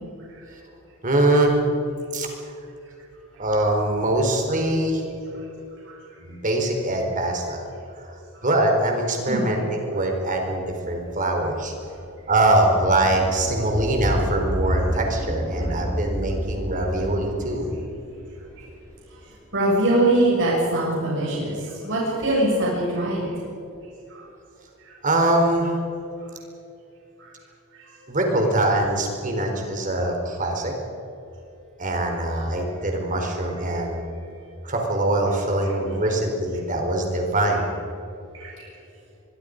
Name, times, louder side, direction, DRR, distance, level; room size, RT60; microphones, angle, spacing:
voice 1, 1.0-1.6 2.1-2.3 3.4-5.0 6.2-7.6 8.0-11.7 12.3-17.7 25.0-25.8 28.1-30.7 31.8-34.0 34.6-37.7, right 1 dB, 35° right, 2 dB, 4.3 m, -23 dB
sound 1, 10.6-19.6, equal, 15° right, 6.9 m, -30 dB
voice 2, 19.5-23.3 24.1-24.2 24.9-25.0 27.2-27.3 33.7-33.8 38.4-38.5, right 1 dB, 60° right, -5 dB, 7.0 m, -22 dB
24.5 x 23.0 x 5.3 m, 2.8 s
head